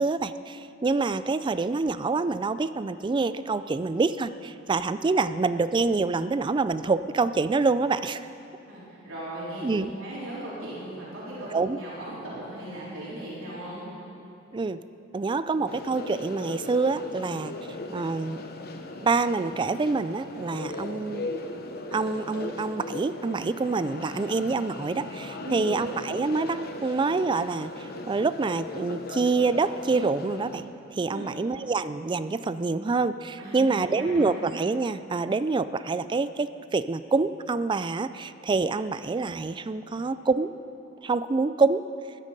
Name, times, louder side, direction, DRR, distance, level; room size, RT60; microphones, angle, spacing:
voice 1, 0.0-8.2 9.6-9.9 11.5-11.8 14.5-14.8 15.1-17.5 17.9-18.4 19.0-21.3 21.9-40.5 41.0-41.8, right 3 dB, 25° right, 13 dB, 0.3 m, -26 dB
voice 2, 8.7-13.9 25.4-25.7 31.1-31.3 33.4-34.4, right 1 dB, 80° right, -8 dB, 4.1 m, -38 dB
sound 1, 15.7-30.6, left 2 dB, 50° left, 1.0 m, -38 dB
16.0 x 12.0 x 5.3 m, 2.6 s
head